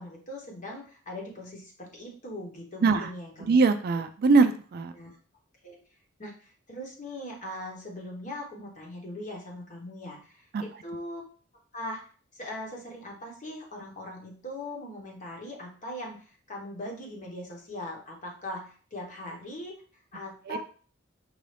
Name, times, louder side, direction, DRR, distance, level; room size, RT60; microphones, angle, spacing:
voice 1, 0.0-3.6 4.9-5.1 5.6-5.8 6.2-11.2 11.7-12.0 12.3-19.7 20.1-20.6, left 1 dB, 40° left, -1 dB, 1.2 m, -40 dB
voice 2, 3.5-4.9 10.5-10.6 20.5-20.6, right 4 dB, 50° right, 9 dB, 0.3 m, -22 dB
5.4 x 2.6 x 3.3 m, 0.41 s
head